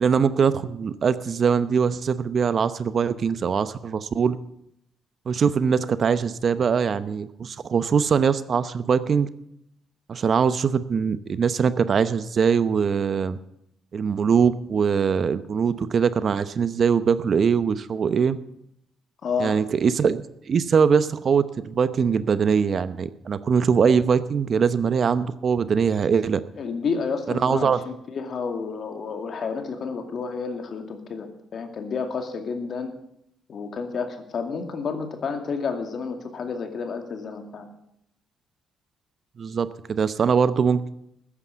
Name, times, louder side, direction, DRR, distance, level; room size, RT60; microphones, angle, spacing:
voice 1, 0.0-4.4 5.3-9.3 10.1-13.4 13.9-18.4 19.4-26.4 27.3-27.8 39.4-40.9, right 6 dB, 50° right, 13 dB, 0.8 m, -22 dB
voice 2, 19.2-19.6 26.6-32.9 33.5-37.7, left 5 dB, 55° left, 6 dB, 2.3 m, -30 dB
14.0 x 9.9 x 6.8 m, 0.77 s
cardioid pair, 75°, 0 cm